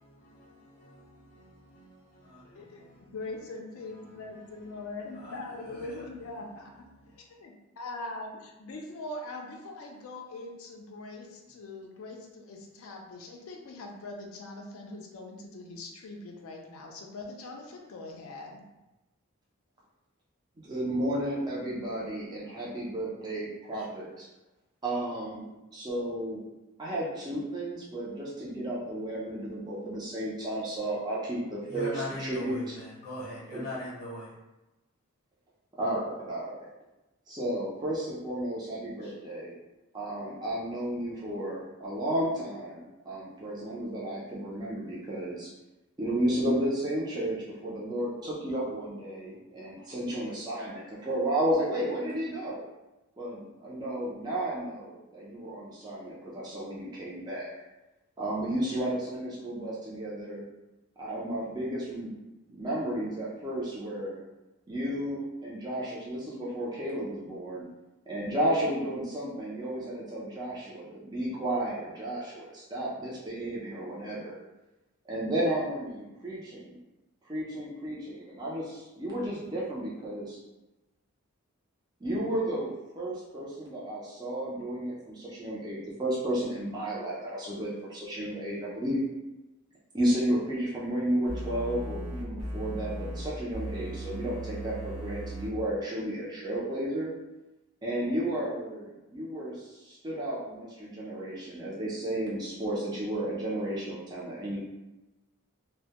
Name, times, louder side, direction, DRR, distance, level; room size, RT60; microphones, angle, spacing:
voice 1, 0.0-7.4 8.9-9.0 11.5-11.6 23.7-23.9 31.7-34.4 39.0-39.1 55.8-55.9, left 1 dB, 45° left, 0.7 m, -44 dB
voice 2, 2.5-18.6, left 2 dB, 75° left, 0.4 m, -42 dB
voice 3, 20.6-24.3 24.8-26.4 26.8-31.9 32.2-32.6 33.5-33.6 35.8-36.7 37.3-39.5 39.9-45.5 46.0-52.7 53.2-57.5 58.2-60.5 61.0-62.2 62.5-64.2 64.7-67.6 68.1-74.3 75.1-76.8 77.3-80.4 82.0-82.7 83.0-89.0 89.9-97.1 97.8-104.6, right 1 dB, 20° right, 0.4 m, -33 dB
sound 1, 91.3-93.3 93.5-95.5, right 1 dB, 80° right, 0.6 m, -37 dB
2.1 x 2.0 x 2.8 m
head